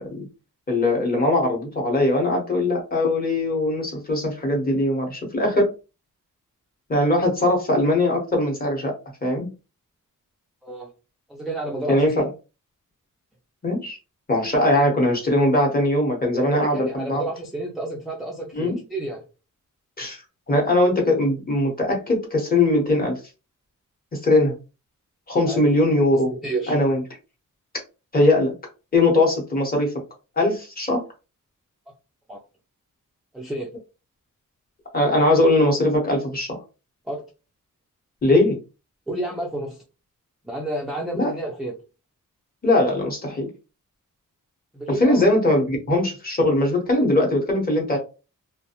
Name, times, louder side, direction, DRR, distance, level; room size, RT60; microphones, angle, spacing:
voice 1, 0.7-5.7 6.9-8.9 9.2-9.5 11.9-12.2 13.6-14.0 14.3-17.2 18.5-18.8 20.0-20.2 20.5-23.2 24.1-24.6 25.3-26.3 26.7-27.0 28.1-28.5 28.9-29.9 30.4-31.1 34.9-36.6 38.2-38.6 41.1-41.3 42.6-43.5 45.0-48.0, left 1 dB, 30° left, 0 dB, 0.9 m, -20 dB
voice 2, 11.3-12.1 16.3-19.2 25.4-25.6 26.1-26.8 32.3-32.4 33.3-33.7 37.0-37.2 39.1-39.8 40.4-41.7 44.7-45.3, right 2 dB, ahead, -1 dB, 0.3 m, -30 dB
2.4 x 2.1 x 2.8 m, 0.31 s
wide cardioid pair, 165°, 32 cm